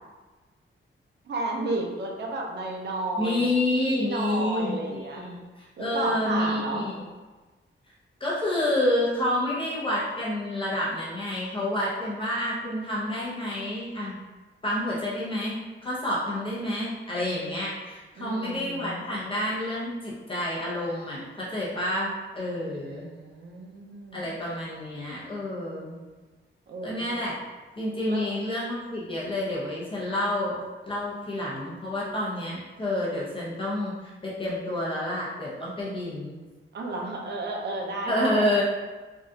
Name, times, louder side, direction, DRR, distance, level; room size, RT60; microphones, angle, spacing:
voice 1, 1.3-5.2 5.8-6.9 18.2-19.0 22.7-24.3 26.7-27.1 28.1-28.3 36.7-38.6, right 2 dB, 55° right, 0 dB, 0.5 m, -32 dB
voice 2, 3.2-7.0 8.2-14.2 14.6-23.1 24.1-26.0 26.8-27.4 27.8-36.4 38.1-38.6, left 1 dB, 25° left, -7 dB, 0.7 m, -29 dB
3.5 x 2.3 x 2.7 m, 1.2 s
wide cardioid pair, 155°, 21 cm